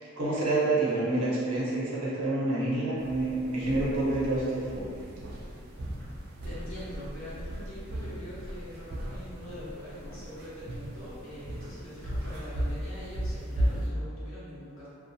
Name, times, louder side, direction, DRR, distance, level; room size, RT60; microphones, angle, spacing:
voice 1, 0.0-5.0, right 2 dB, 80° right, -7 dB, 0.7 m, -28 dB
sound 1, 3.0-13.9, equal, 45° right, 0.3 m, -36 dB
voice 2, 6.4-14.9, left 1 dB, 65° left, -9 dB, 0.9 m, -43 dB
2.7 x 2.3 x 2.2 m, 2.3 s
head